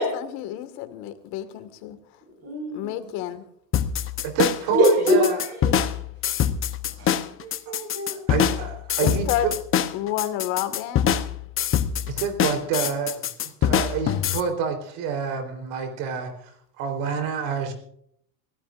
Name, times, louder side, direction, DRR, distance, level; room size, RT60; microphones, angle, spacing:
voice 1, 0.0-2.0 2.7-3.4 9.0-9.5 9.9-11.2, left 11 dB, 65° left, 9 dB, 2.0 m, -30 dB
voice 2, 2.4-3.0 4.7-5.3 7.0-7.1 7.4-8.2, equal, 35° right, 0 dB, 5.5 m, -22 dB
sound 1, 3.7-14.4, left 9 dB, 30° left, 0.9 m, -24 dB
voice 3, 4.2-5.5 8.1-9.5 12.1-17.7, right 7 dB, 60° right, 6 dB, 4.0 m, -28 dB
26.5 x 16.5 x 2.6 m, 0.67 s
supercardioid pair, 130°, 43 cm